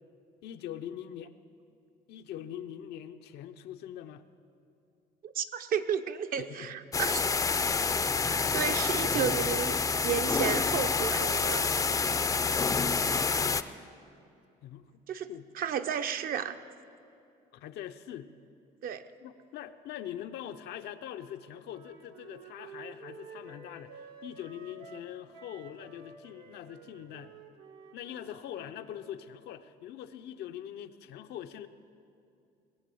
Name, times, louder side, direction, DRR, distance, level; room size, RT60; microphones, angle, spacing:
voice 1, 0.4-1.3 2.1-4.2 6.4-6.8 12.3-13.9 14.6-15.0 15.3-15.5 17.5-18.3 19.2-27.3 27.9-31.7, left 10 dB, 80° left, 8 dB, 0.7 m, -43 dB
voice 2, 5.2-7.3 8.5-11.7 15.1-15.3 15.5-16.6 18.8-19.0, right 8 dB, 60° right, 9 dB, 0.7 m, -32 dB
sound 1, 6.9-13.6, left 4 dB, 20° left, 0.4 m, -28 dB
Wind instrument woodwind instrument, 21.7-29.1, right 4 dB, 85° right, 1.5 m, -51 dB
19.5 x 7.5 x 7.7 m, 2.5 s
cardioid pair, 110°, 17 cm